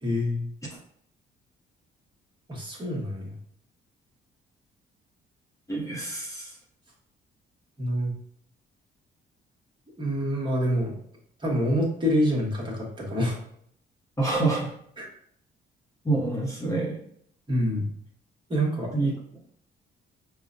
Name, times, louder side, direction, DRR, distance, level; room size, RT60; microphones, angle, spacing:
voice 1, 0.0-0.5 2.5-3.3 7.8-8.1 10.0-10.9 11.4-13.4 15.0-15.1 17.5-17.9 18.5-18.9, equal, 25° right, -3 dB, 1.2 m, -26 dB
voice 2, 5.7-6.6 14.2-14.7 16.0-17.0 18.9-19.2, right 3 dB, 15° left, -4 dB, 0.9 m, -27 dB
4.8 x 2.1 x 2.5 m, 0.66 s
cardioid pair, 90°, 20 cm